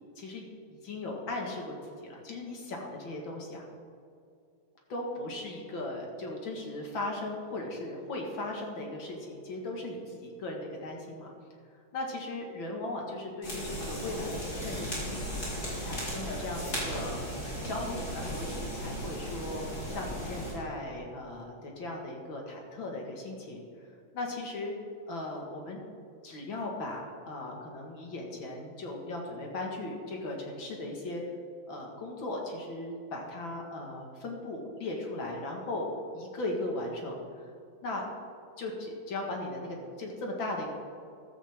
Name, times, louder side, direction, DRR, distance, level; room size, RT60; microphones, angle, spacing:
voice 1, 0.2-3.6 4.9-11.3 11.9-15.2 15.8-17.3 17.6-23.6 24.1-24.7 25.1-25.8 26.2-31.2 31.7-37.5 37.8-38.0 38.6-40.7, left 2 dB, 60° left, 0 dB, 2.5 m, -37 dB
sound 1, 13.4-20.5, equal, 45° left, 4.6 m, -36 dB
14.5 x 12.5 x 3.7 m, 2.3 s
omnidirectional pair, 2.4 m